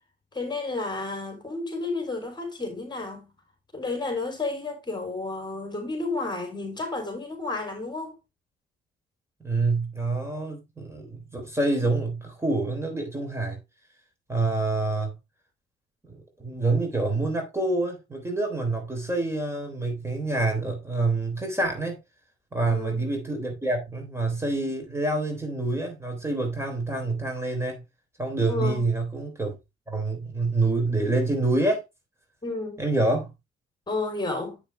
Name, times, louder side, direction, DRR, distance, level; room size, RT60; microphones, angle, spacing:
voice 1, 0.3-3.3 3.7-8.2 22.7-23.0 28.5-28.8 32.4-32.8 33.9-34.6, left 3 dB, 20° left, 3.7 m, -31 dB
voice 2, 9.4-13.6 14.3-15.1 16.1-22.0 22.5-27.8 28.2-29.6 29.9-31.8 32.8-33.3, right 2 dB, 15° right, 3.5 m, -27 dB
8.4 x 7.1 x 3.3 m
cardioid pair, 90°, 20 cm